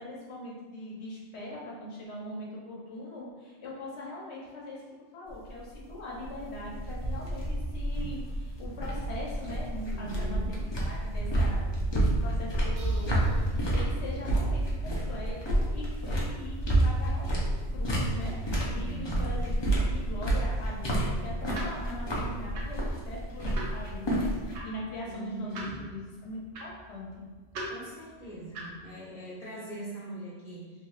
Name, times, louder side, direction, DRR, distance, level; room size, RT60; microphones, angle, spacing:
voice 1, 0.0-4.8 5.1-27.2, left 1 dB, 80° left, -4 dB, 1.1 m, -41 dB
sound 1, 5.3-24.6, right 1 dB, 35° left, 0.5 m, -29 dB
voice 2, 9.9-10.5 18.8-19.4 25.1-25.7 27.7-30.7, right 1 dB, 55° left, -5 dB, 1.0 m, -41 dB
sound 2, 12.8-16.4, right 2 dB, 55° right, 0.6 m, -38 dB
sound 3, 21.5-28.9, right 1 dB, 90° right, 1.0 m, -44 dB
3.5 x 2.9 x 2.4 m, 1.4 s
omnidirectional pair, 1.1 m